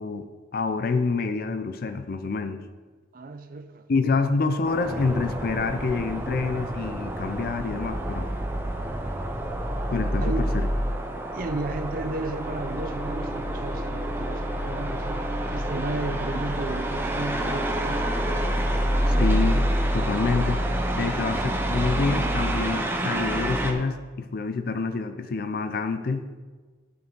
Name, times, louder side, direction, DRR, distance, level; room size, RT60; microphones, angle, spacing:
voice 1, 0.0-2.6 3.9-8.3 9.9-10.7 19.1-20.6 20.9-26.3, left 4 dB, 55° left, 0.5 m, -27 dB
voice 2, 3.1-3.8 10.2-10.4 11.3-15.3 15.5-18.3, right 2 dB, 50° right, 0.5 m, -33 dB
sound 1, 4.6-23.7, right 1 dB, 10° right, 0.6 m, -27 dB
9.6 x 5.4 x 3.8 m
head